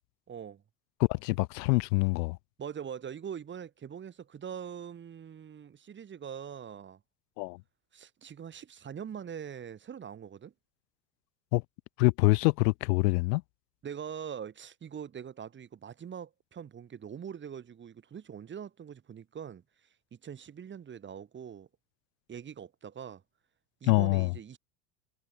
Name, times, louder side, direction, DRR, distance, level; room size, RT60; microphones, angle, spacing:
voice 1, 0.3-0.6 2.6-7.0 7.9-10.5 13.8-21.7 22.3-23.2 23.8-24.6, right 8 dB, 25° right, 1.3 m, -43 dB
voice 2, 1.0-2.4 7.4-7.6 11.5-11.6 12.0-13.4 23.9-24.3, left 24 dB, 85° left, 0.6 m, -25 dB
supercardioid pair, 115°, 48 cm